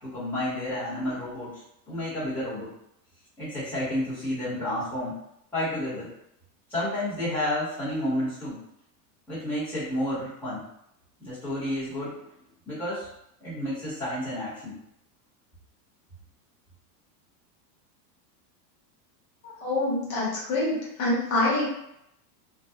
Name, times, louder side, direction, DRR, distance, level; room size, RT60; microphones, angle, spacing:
voice 1, 0.0-1.6 1.9-2.7 3.4-5.1 5.5-6.1 6.7-8.6 9.3-10.6 11.2-12.1 12.7-13.1 13.4-14.7, left 1 dB, 5° left, -15 dB, 1.0 m, -30 dB
voice 2, 19.6-21.6, left 2 dB, 55° left, -6 dB, 1.2 m, -26 dB
2.5 x 2.2 x 2.2 m, 0.79 s
supercardioid pair, 165°, 49 cm